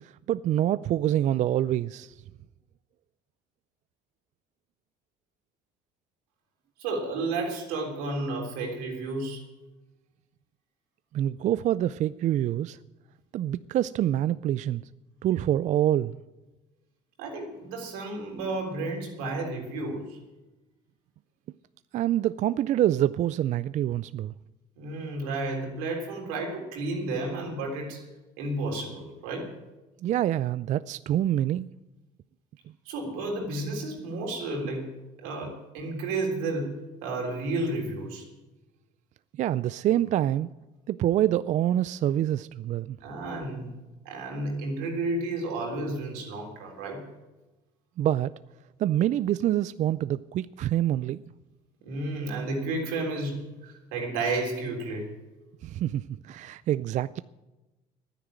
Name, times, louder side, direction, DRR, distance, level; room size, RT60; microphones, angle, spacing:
voice 1, 0.0-2.2 11.1-12.8 13.3-14.8 15.2-16.2 21.9-24.3 30.0-31.7 39.3-40.5 40.9-43.0 48.0-48.3 48.8-51.2 55.6-57.2, right 12 dB, 45° right, 0.4 m, -26 dB
voice 2, 6.8-9.4 17.2-20.2 24.8-28.1 28.4-29.5 32.9-34.9 35.2-36.7 37.0-38.3 43.0-43.7 44.1-47.0 51.8-55.1, right 2 dB, 90° right, 3.6 m, -32 dB
11.0 x 9.9 x 9.0 m
supercardioid pair, 100°, 17 cm